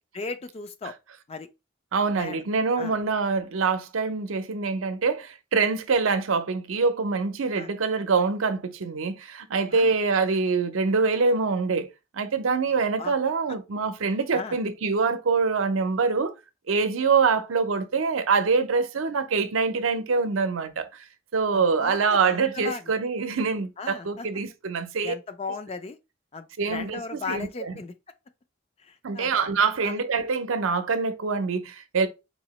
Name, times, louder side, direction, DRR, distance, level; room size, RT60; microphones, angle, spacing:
voice 1, 0.1-0.9 1.3-1.5 2.2-2.4 2.8-2.9 7.5-7.7 9.7-9.9 12.7-13.1 14.0-14.6 21.5-22.9 23.8-24.3 25.0-26.0 26.3-27.9 28.8-29.4 29.8-30.0, left 4 dB, 30° left, 0.3 m, -37 dB
voice 2, 1.9-11.9 12.1-16.3 16.7-20.9 21.3-25.1 26.6-27.8 29.0-32.1, right 4 dB, 85° right, 0.6 m, -25 dB
4.1 x 2.8 x 3.0 m
head